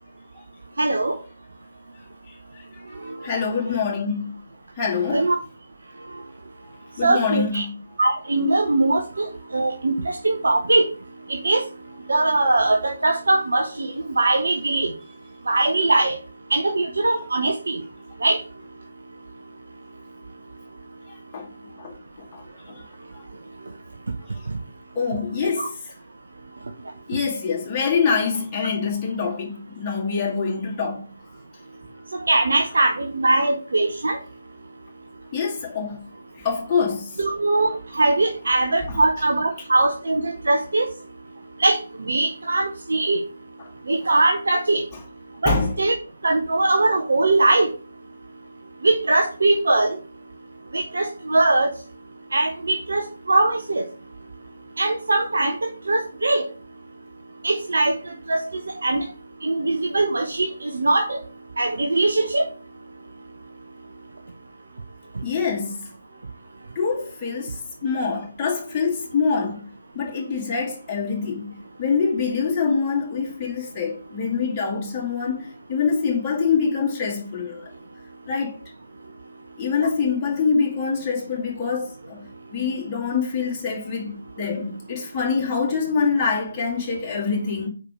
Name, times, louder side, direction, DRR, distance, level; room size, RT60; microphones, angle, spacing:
voice 1, 0.8-1.2 5.1-5.4 7.0-7.6 8.0-10.8 11.3-11.6 12.1-14.9 15.5-16.2 16.5-17.8 18.2-18.4 25.6-25.7 32.3-34.2 37.2-40.9 41.6-43.2 43.9-44.8 45.4-45.9 46.2-47.7 48.8-50.0 50.7-51.7 52.3-53.8 54.8-56.5 57.4-58.5 58.8-59.0 59.4-61.2 61.6-62.4 79.8-79.9, right 2 dB, 65° right, 0.9 m, -21 dB
voice 2, 2.3-2.6 3.2-4.3 4.8-5.3 7.0-7.8 21.1-21.5 21.8-21.9 22.3-22.8 25.0-25.9 27.1-31.1 35.3-36.0 36.3-37.2 38.9-39.0 45.4-45.7 65.2-65.9 66.8-69.7 69.9-71.5 71.8-77.6 78.3-78.6 79.6-82.2 82.5-87.7, left 5 dB, 20° left, 2.2 m, -25 dB
4.8 x 4.7 x 5.9 m
figure-of-eight pair, 145°, 0 cm